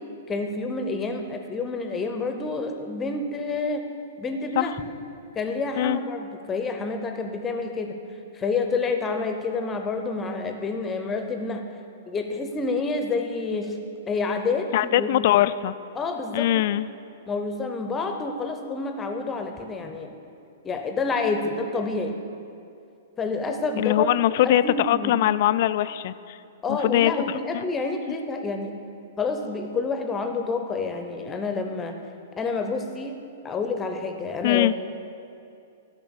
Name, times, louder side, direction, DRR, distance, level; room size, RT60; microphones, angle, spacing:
voice 1, 0.3-3.9 4.2-4.7 5.3-7.9 8.3-11.6 12.1-13.8 14.1-14.7 15.0-15.1 15.9-16.6 17.3-20.1 20.6-22.2 23.2-24.1 24.4-25.1 26.6-28.7 29.2-31.9 32.4-33.2 33.4-34.7, left 3 dB, 20° left, 5 dB, 0.8 m, -28 dB
voice 2, 14.7-15.7 16.3-16.9 23.8-26.4 26.7-27.1 27.5-27.7 34.4-34.7, left 13 dB, 50° left, 15 dB, 0.3 m, -22 dB
12.0 x 5.9 x 7.0 m, 2.5 s
figure-of-eight pair, 105°, 0 cm